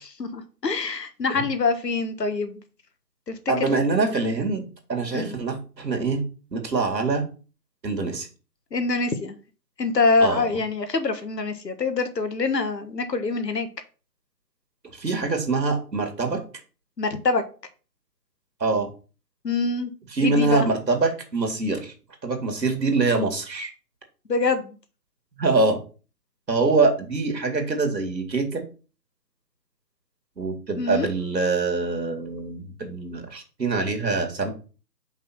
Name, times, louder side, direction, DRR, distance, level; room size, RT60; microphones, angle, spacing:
voice 1, 0.2-2.6 3.3-3.4 5.1-5.3 8.7-9.3 9.8-13.7 17.0-17.4 19.4-19.9 20.2-20.7 24.3-24.7 30.8-31.1, left 3 dB, 80° left, 9 dB, 1.4 m, -25 dB
voice 2, 3.5-6.2 6.5-7.3 7.8-8.3 10.2-10.5 14.9-16.4 18.6-18.9 20.1-21.9 22.2-23.7 25.4-25.8 26.5-28.6 30.4-34.5, right 3 dB, 80° right, 4 dB, 2.3 m, -24 dB
5.5 x 3.8 x 5.8 m, 0.36 s
figure-of-eight pair, 170°, 49 cm